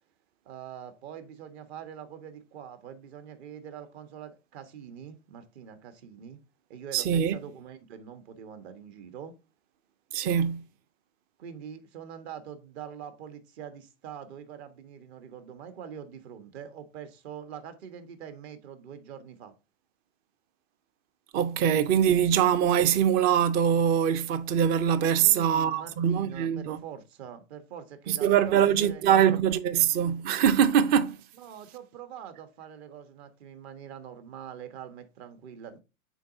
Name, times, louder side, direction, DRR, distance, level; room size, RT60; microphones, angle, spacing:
voice 1, 0.4-6.4 6.7-9.3 11.4-19.5 25.2-29.4 31.4-35.8, right 8 dB, 50° right, 1.3 m, -44 dB
voice 2, 6.9-7.4 10.1-10.6 21.3-26.8 28.1-31.2, right 9 dB, 25° right, 0.5 m, -23 dB
9.0 x 4.0 x 2.6 m
hypercardioid pair, 125°, 41 cm